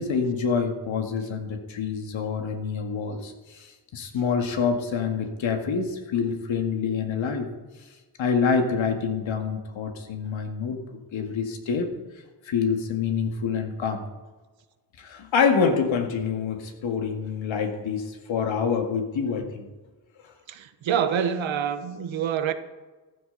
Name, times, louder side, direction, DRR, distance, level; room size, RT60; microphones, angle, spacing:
voice 1, 0.0-7.5 8.2-10.8 11.1-11.9 12.4-14.0 15.0-19.7 20.2-20.3, left 6 dB, 85° left, 2.0 m, -26 dB
voice 2, 20.5-22.5, right 8 dB, 80° right, 1.2 m, -26 dB
14.5 x 12.0 x 4.0 m
cardioid pair, 70°, 46 cm